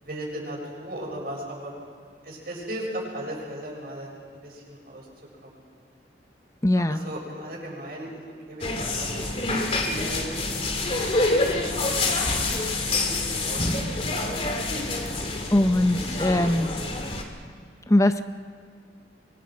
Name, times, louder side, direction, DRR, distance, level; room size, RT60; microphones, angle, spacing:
voice 1, 0.0-1.7 2.2-5.1 5.4-5.6 6.9-9.1 9.8-10.3 10.8-11.9 12.8-13.7 14.0-14.3 16.2-17.0, right 1 dB, 60° right, -3 dB, 7.3 m, -37 dB
voice 2, 6.6-7.0 15.5-16.7 17.9-18.2, left 1 dB, 20° left, 10 dB, 0.7 m, -21 dB
sound 1, 8.6-17.2, left 2 dB, 35° left, 2.4 m, -27 dB
28.0 x 24.0 x 5.3 m, 2.1 s
head